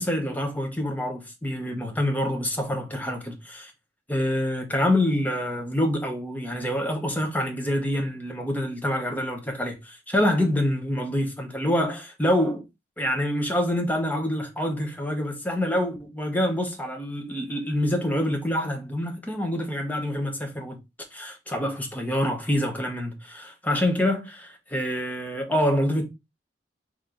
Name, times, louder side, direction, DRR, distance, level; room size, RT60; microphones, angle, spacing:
voice 1, 0.0-3.7 4.1-12.6 13.0-20.8 21.1-26.1, left 1 dB, 10° left, 0.9 m, -26 dB
4.3 x 3.2 x 3.7 m
head